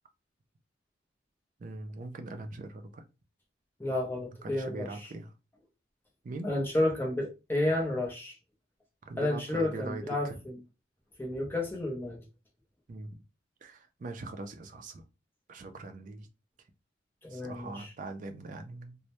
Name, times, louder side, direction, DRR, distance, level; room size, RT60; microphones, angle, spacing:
voice 1, 1.6-3.0 4.2-5.3 6.2-6.5 9.1-10.4 12.9-13.2 13.6-15.0 15.5-16.3 17.3-19.0, right 2 dB, 45° right, 0.3 m, -41 dB
voice 2, 3.8-4.9 6.4-8.3 9.2-10.6 11.2-12.2 17.2-17.9, left 1 dB, 10° left, 0.5 m, -31 dB
2.1 x 2.0 x 2.8 m
head